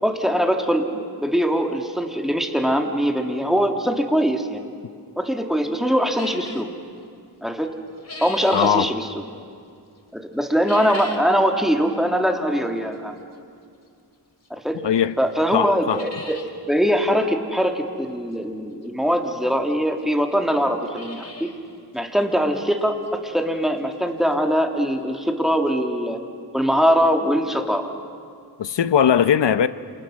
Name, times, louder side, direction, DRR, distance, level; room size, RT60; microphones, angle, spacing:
voice 1, 0.0-4.7 5.2-6.7 7.4-7.7 8.2-9.2 10.1-13.1 14.5-14.8 15.2-21.5 21.9-26.2 26.5-27.9, equal, ahead, 2.6 m, -22 dB
sound 1, 6.1-6.7 7.7-8.8 10.5-11.3 11.7-11.8 12.7-12.8 14.4-14.5 15.0-15.1 15.3-15.4 15.7-16.5 16.9-17.0 17.2-17.3 18.8-18.9 19.7-19.8 20.0-20.1 20.6-21.6 22.0-22.1 22.6-22.7 23.1-23.2 24.9-25.0 25.2-25.3 25.7-25.8, left 2 dB, 40° left, 3.1 m, -38 dB
voice 2, 8.5-8.9 14.8-15.1 15.5-16.0 28.6-29.7, left 8 dB, 85° left, 0.9 m, -19 dB
28.5 x 28.0 x 6.4 m
cardioid pair, 65°, 41 cm